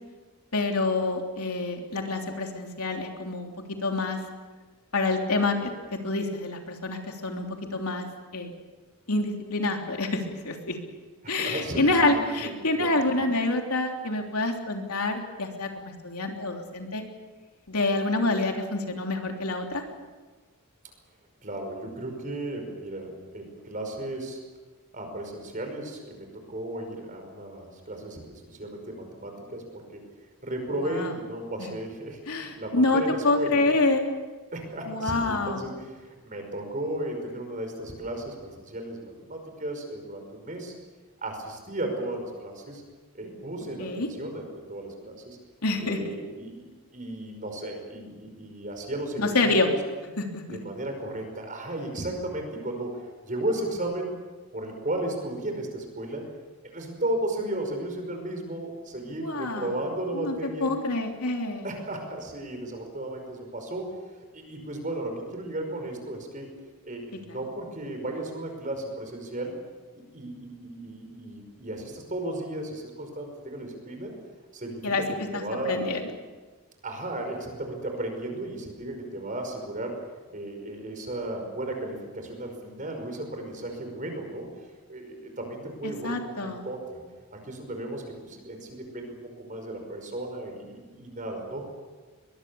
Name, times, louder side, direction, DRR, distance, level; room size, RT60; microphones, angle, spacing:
voice 1, 0.5-4.2 4.9-8.1 8.3-8.5 9.1-10.8 11.3-17.0 17.7-19.8 30.8-31.1 31.6-31.7 32.3-34.0 34.9-35.6 43.8-44.1 45.6-46.0 49.2-49.7 50.2-50.6 59.2-59.7 60.1-61.7 67.3-67.4 74.8-76.0 85.8-86.6, left 2 dB, 85° left, 2 dB, 3.2 m, -27 dB
voice 2, 11.2-13.0 21.4-24.4 24.9-30.0 30.4-33.7 34.5-40.7 41.2-42.8 43.1-45.4 45.8-49.8 50.5-54.1 54.5-56.3 56.6-60.7 61.6-63.9 64.3-66.5 66.8-69.5 70.0-74.1 74.5-75.8 76.8-80.0 80.3-84.5 84.9-87.0 87.3-91.6, right 1 dB, 35° right, 4 dB, 5.4 m, -35 dB
22.5 x 22.0 x 7.0 m, 1.3 s
head